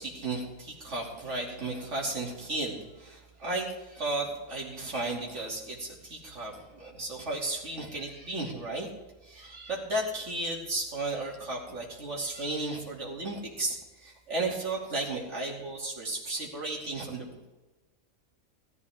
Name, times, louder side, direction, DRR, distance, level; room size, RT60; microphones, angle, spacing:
voice 1, 0.0-8.9 9.2-17.5, right 2 dB, 55° right, -3 dB, 3.1 m, -34 dB
16.0 x 13.5 x 3.6 m, 1.1 s
omnidirectional pair, 1.5 m